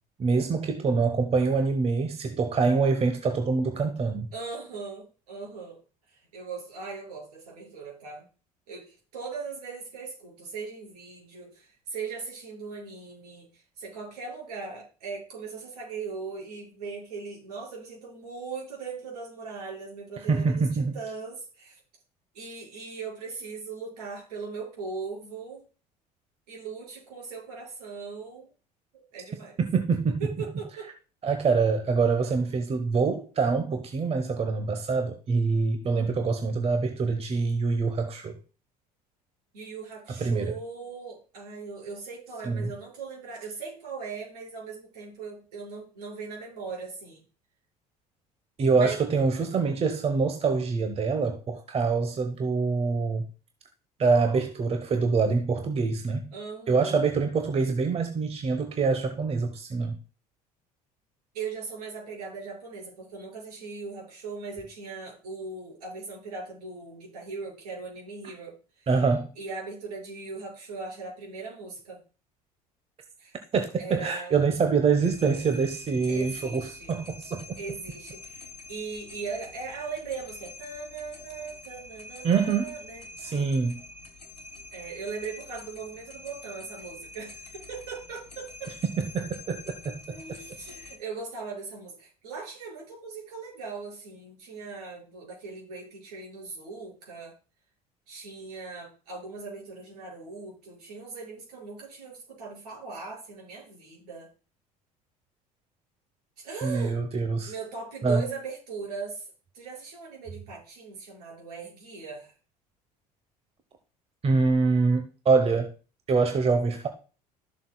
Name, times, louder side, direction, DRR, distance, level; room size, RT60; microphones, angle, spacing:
voice 1, 0.2-4.3 20.3-20.9 29.7-30.2 31.2-38.4 40.1-40.5 42.4-42.7 48.6-53.3 54.0-56.3 56.7-60.0 68.9-69.3 73.5-77.6 82.2-82.7 83.2-83.8 89.0-90.2 106.6-107.5 108.0-108.3 114.2-115.7 116.1-116.9, right 4 dB, 30° right, 1.0 m, -25 dB
voice 2, 4.3-5.8 6.1-8.3 8.7-21.8 22.3-25.6 26.5-28.5 28.9-29.6 30.2-30.9 39.5-47.2 48.7-49.0 56.3-57.0 61.3-68.9 69.4-72.0 73.2-73.4 73.8-74.4 76.1-76.9 77.6-83.6 84.7-88.7 90.1-97.3 98.1-104.3 106.4-107.0 107.5-109.3 109.5-112.3, right 4 dB, 70° right, 5.3 m, -39 dB
sound 1, 75.0-91.0, left 2 dB, 90° left, 1.3 m, -46 dB
13.0 x 7.1 x 2.3 m
figure-of-eight pair, 60°, 20 cm